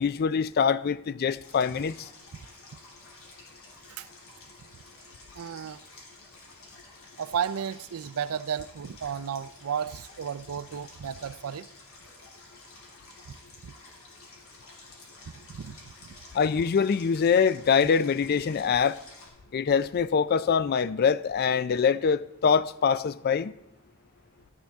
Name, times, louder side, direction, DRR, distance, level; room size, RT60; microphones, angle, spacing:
voice 1, 0.0-2.1 16.3-19.0 19.5-23.5, left 6 dB, 45° left, 0.3 m, -24 dB
Stream, 1.4-19.3, left 2 dB, 75° left, 2.9 m, -51 dB
voice 2, 5.3-5.8 7.2-11.7 13.6-13.7 15.5-16.1, right 8 dB, 75° right, 0.4 m, -33 dB
14.0 x 8.5 x 3.5 m
head